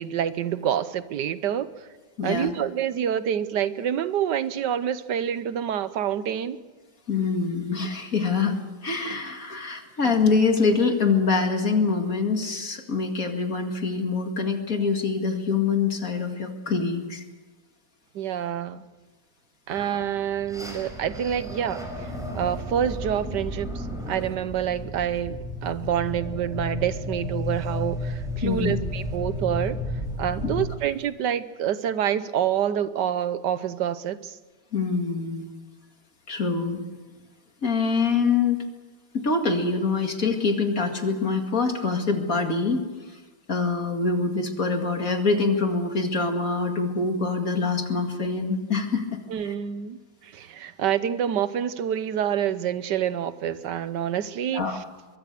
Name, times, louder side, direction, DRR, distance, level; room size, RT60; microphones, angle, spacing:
voice 1, 0.0-1.7 2.2-6.6 18.1-18.9 19.7-21.8 22.3-29.8 30.2-34.4 49.3-54.6, right 9 dB, 65° right, 14 dB, 1.3 m, -27 dB
voice 2, 2.2-2.5 7.1-17.2 28.4-28.7 30.4-30.5 34.7-35.5 36.3-36.8 37.6-38.6 39.1-42.8 43.5-49.2 49.4-49.5 54.5-54.8, left 4 dB, 45° left, 4 dB, 2.5 m, -25 dB
sound 1, 19.7-30.7, left 1 dB, ahead, 5.1 m, -33 dB
24.0 x 22.0 x 6.7 m, 1.3 s
omnidirectional pair, 2.3 m